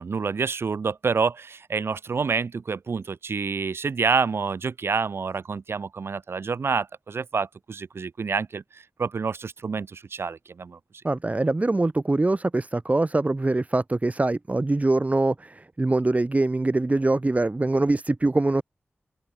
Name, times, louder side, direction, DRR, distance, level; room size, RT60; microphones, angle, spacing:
voice 1, 0.0-10.8, right 5 dB, 75° right, 0.7 m, -28 dB
voice 2, 11.0-18.6, right 2 dB, 35° right, 1.5 m, -23 dB
cardioid pair, 45°, 4 cm